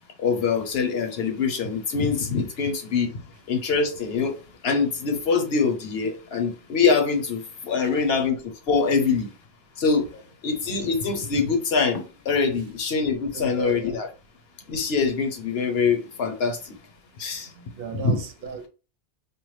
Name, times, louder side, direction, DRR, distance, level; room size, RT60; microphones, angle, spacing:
voice 1, 0.2-3.2 3.5-4.4 4.6-9.3 9.8-10.1 10.4-14.1 14.7-16.7 17.2-17.5 17.9-18.2, left 5 dB, 80° left, 1.0 m, -24 dB
voice 2, 13.3-14.0 17.5-18.7, right 5 dB, 65° right, 0.8 m, -35 dB
4.4 x 2.3 x 3.2 m
omnidirectional pair, 1.0 m